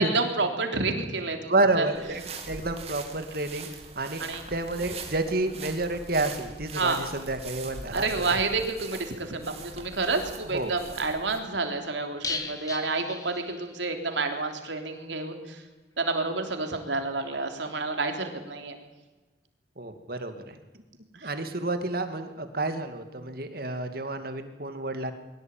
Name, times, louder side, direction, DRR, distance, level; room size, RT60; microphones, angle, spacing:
voice 1, 0.0-1.9 4.2-4.4 6.8-7.1 7.9-15.4 16.0-18.8 21.2-21.3, right 3 dB, 85° right, 5 dB, 3.5 m, -29 dB
voice 2, 1.5-3.7 4.0-8.4 10.5-10.7 19.8-20.6 21.2-25.1, right 2 dB, 55° right, 7 dB, 2.4 m, -29 dB
sound 1, 1.9-11.4, right 4 dB, 35° right, 3.2 m, -42 dB
sound 2, 12.2-14.0 14.3-14.4 14.7-14.8, left 4 dB, 20° left, 1.9 m, -36 dB
22.5 x 17.5 x 9.1 m, 1.2 s
head